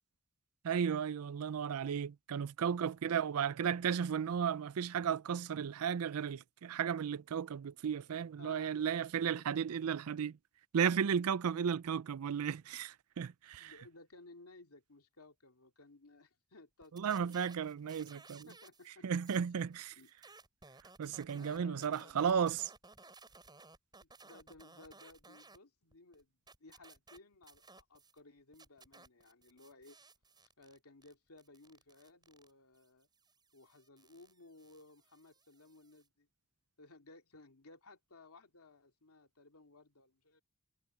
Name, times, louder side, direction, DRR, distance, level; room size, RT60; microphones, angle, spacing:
voice 1, 0.6-10.4 10.7-13.7 16.9-18.5 19.0-19.9 21.0-22.6, right 7 dB, 75° right, 0.4 m, -34 dB
voice 2, 8.4-9.5 11.5-11.8 13.6-18.2 18.5-19.4 19.9-20.1 21.3-22.3 24.0-26.3 26.6-30.0 30.6-33.1 33.5-36.3 36.8-40.4, left 3 dB, 80° left, 2.6 m, -59 dB
sound 1, 16.8-18.9 19.1-25.6 25.9-28.2 28.5-36.1, right 3 dB, 20° right, 6.1 m, -60 dB
head